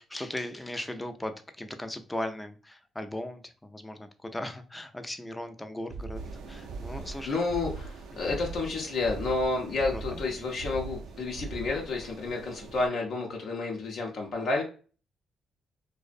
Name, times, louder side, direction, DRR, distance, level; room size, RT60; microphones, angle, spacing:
voice 1, 0.0-7.4 8.3-8.4 9.9-10.2, left 1 dB, 15° left, 8 dB, 0.4 m, -38 dB
sound 1, 5.9-12.0, right 4 dB, 65° right, 0.8 m, -40 dB
sound 2, 6.1-12.9, right 3 dB, 85° right, 0.4 m, -47 dB
voice 2, 7.2-14.6, left 3 dB, 70° left, 0 dB, 0.5 m, -30 dB
2.5 x 2.0 x 2.4 m, 0.38 s
cardioid pair, 70°, 0 cm